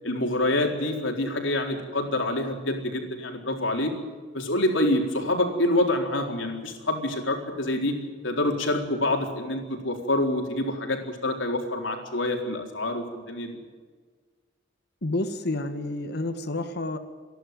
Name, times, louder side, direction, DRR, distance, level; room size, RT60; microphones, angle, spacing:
voice 1, 0.0-3.9 4.3-7.9 8.2-13.6, left 1 dB, 80° left, 2 dB, 4.1 m, -26 dB
voice 2, 15.0-17.0, left 2 dB, 60° left, 8 dB, 1.7 m, -29 dB
28.0 x 11.5 x 9.4 m, 1.5 s
head